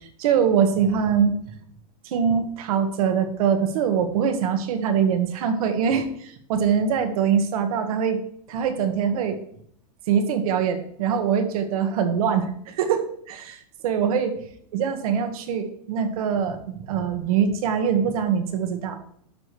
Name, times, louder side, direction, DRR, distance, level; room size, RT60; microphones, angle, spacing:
voice 1, 0.2-1.4 2.0-8.2 8.5-9.4 10.1-14.4 14.7-19.0, right 7 dB, 60° right, 7 dB, 1.5 m, -23 dB
12.0 x 6.3 x 3.2 m, 0.65 s
supercardioid pair, 155°, 21 cm